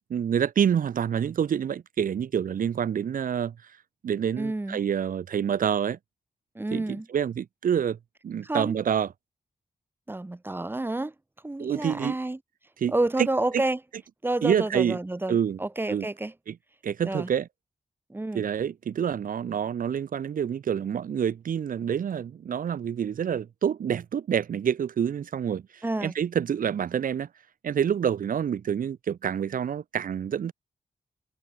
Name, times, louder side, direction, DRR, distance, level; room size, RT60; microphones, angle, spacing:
voice 1, 0.0-3.7 4.0-6.0 6.7-8.0 8.2-9.1 11.6-12.2 12.8-12.9 14.4-15.0 15.3-15.6 15.9-16.1 16.5-16.6 16.8-17.5 18.3-27.3 27.6-30.5, right 8 dB, 80° right, 1.8 m, -27 dB
voice 2, 4.4-4.8 6.6-7.1 8.4-8.8 10.1-11.1 11.4-12.4 12.9-13.8 14.2-16.3 17.0-17.3 18.1-18.5 25.8-26.1, right 2 dB, 15° right, 3.8 m, -29 dB
wide cardioid pair, 125°, 14 cm